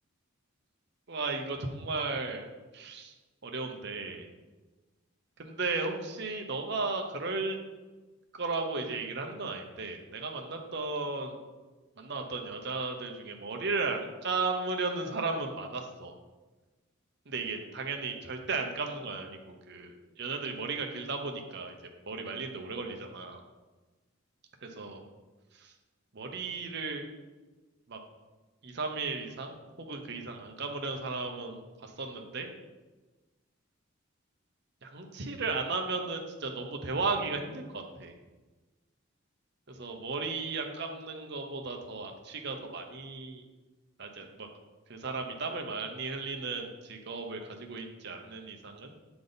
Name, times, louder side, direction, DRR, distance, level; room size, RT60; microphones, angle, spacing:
voice 1, 1.1-2.5 2.7-3.1 3.4-4.3 5.4-7.6 8.4-11.4 12.0-16.1 17.3-21.8 22.1-23.4 24.6-25.0 25.6-25.7 26.1-27.1 27.9-28.0 28.6-32.5 34.8-38.1 39.7-43.4 44.0-44.5 44.9-48.9, right 3 dB, 55° right, 3 dB, 0.8 m, -35 dB
7.9 x 3.5 x 4.0 m, 1.2 s
head